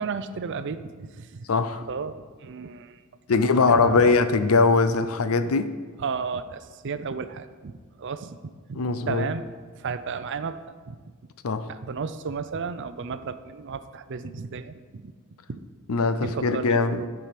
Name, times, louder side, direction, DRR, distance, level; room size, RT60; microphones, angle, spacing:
voice 1, 0.0-1.5 1.9-3.0 3.3-3.4 3.7-4.2 6.0-7.7 8.0-8.4 8.7-9.5 9.8-10.6 10.9-11.0 11.7-15.1 15.5-15.6 16.2-17.1, right 5 dB, 55° right, 0.5 m, -33 dB
voice 2, 1.5-1.8 3.3-5.7 8.7-9.3 11.4-11.7 15.9-17.1, left 4 dB, 75° left, 0.6 m, -21 dB
12.0 x 4.8 x 5.9 m
head